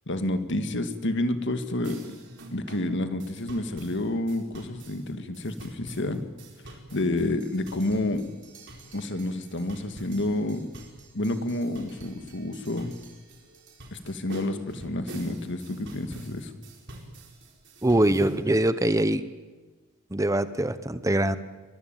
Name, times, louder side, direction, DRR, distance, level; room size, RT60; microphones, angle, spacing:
voice 1, 0.1-2.2 2.5-6.2 6.9-8.3 8.9-10.7 11.1-13.0 13.9-16.5, left 1 dB, 60° left, 9 dB, 1.9 m, -29 dB
sound 1, 1.8-18.4, right 1 dB, 55° right, 4.7 m, -47 dB
voice 2, 17.8-19.3 20.1-21.4, right 1 dB, 15° right, 13 dB, 0.8 m, -23 dB
23.5 x 20.5 x 9.1 m, 1.3 s
head